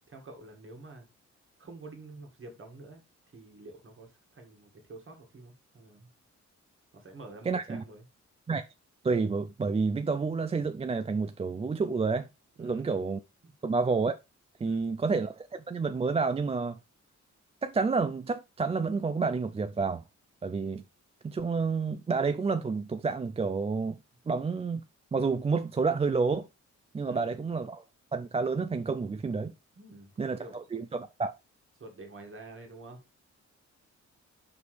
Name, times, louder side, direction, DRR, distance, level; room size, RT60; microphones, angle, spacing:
voice 1, 0.1-1.1 1.6-3.0 3.3-6.1 6.9-8.0 12.6-12.9 13.4-13.5 14.6-14.9 27.0-27.3 29.8-30.6 31.8-33.0, right 2 dB, 45° right, 1.9 m, -48 dB
voice 2, 7.5-7.8 8.5-8.6 9.0-12.3 12.6-13.2 13.6-14.2 14.6-16.8 17.6-20.0 20.4-20.8 21.2-24.0 24.3-24.8 25.1-26.5 26.9-27.8 28.1-29.5 30.2-31.3, right 4 dB, 20° right, 0.3 m, -29 dB
6.1 x 5.3 x 3.3 m
wide cardioid pair, 145°, 29 cm